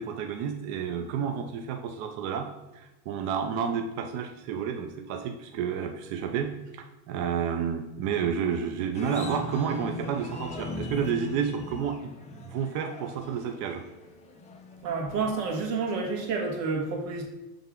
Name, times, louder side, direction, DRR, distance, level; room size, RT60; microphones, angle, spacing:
voice 1, 0.0-13.8, right 7 dB, 40° right, 5 dB, 0.6 m, -31 dB
sound 1, 8.9-15.6, left 2 dB, 15° left, 0.6 m, -40 dB
voice 2, 14.8-17.2, right 4 dB, 75° right, -1 dB, 1.8 m, -29 dB
7.4 x 3.4 x 3.6 m, 1.0 s
supercardioid pair, 120°, 46 cm